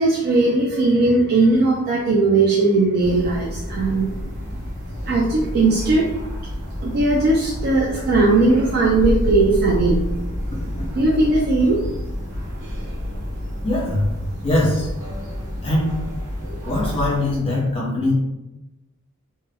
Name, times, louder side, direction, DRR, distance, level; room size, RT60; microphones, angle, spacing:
voice 1, 0.0-4.1 4.5-4.6 5.1-6.1 6.8-10.0 10.9-11.8, right 2 dB, 45° right, -3 dB, 0.3 m, -18 dB
sound 1, 3.0-17.4, equal, 80° right, 0.7 m, -29 dB
voice 2, 13.6-14.1 14.4-14.9 15.6-16.0 16.6-18.1, left 1 dB, 25° left, -4 dB, 0.8 m, -21 dB
2.1 x 2.1 x 3.4 m, 0.98 s
head